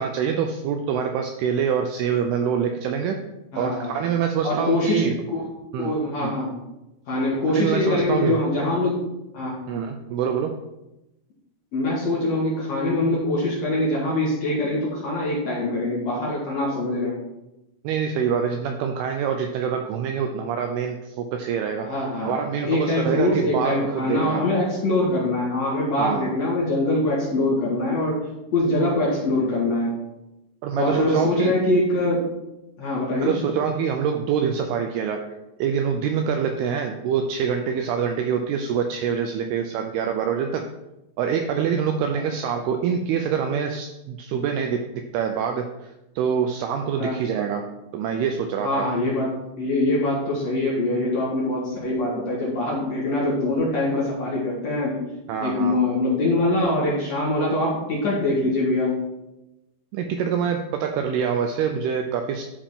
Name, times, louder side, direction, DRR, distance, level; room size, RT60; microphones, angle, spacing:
voice 1, 0.0-3.2 3.6-5.1 5.7-5.9 6.2-6.4 7.5-8.4 9.7-10.6 17.8-21.9 22.2-24.4 26.0-26.3 30.6-31.6 33.2-35.3 35.6-40.7 41.2-48.9 55.3-55.8 59.9-62.5, right 7 dB, 90° right, 5 dB, 2.2 m, -25 dB
voice 2, 3.5-3.9 4.4-5.4 5.8-6.6 7.1-8.9 9.3-9.6 11.7-17.1 21.8-30.0 30.8-32.2 32.8-33.3 47.0-47.2 48.6-55.0 55.4-59.0, left 2 dB, 55° left, -6 dB, 2.0 m, -23 dB
11.5 x 4.9 x 3.6 m, 0.95 s
omnidirectional pair, 5.1 m